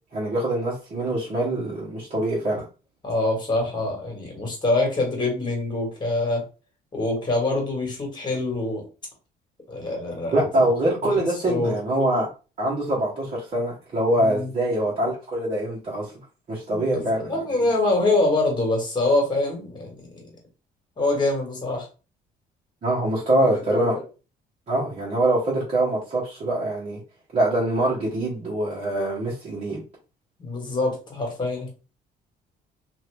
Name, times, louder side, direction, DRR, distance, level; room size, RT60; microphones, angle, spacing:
voice 1, 0.1-2.6 10.3-12.3 12.6-16.1 16.5-17.7 22.8-24.0 24.7-27.0 27.3-29.8, right 1 dB, 40° right, -7 dB, 1.2 m, -24 dB
voice 2, 3.0-6.4 6.9-8.9 9.7-10.7 11.0-11.7 14.2-14.5 16.7-20.3 21.0-21.9 23.5-23.9 30.4-31.7, left 2 dB, 25° left, 1 dB, 1.7 m, -25 dB
2.8 x 2.6 x 3.4 m, 0.33 s
cardioid pair, 110°, 17 cm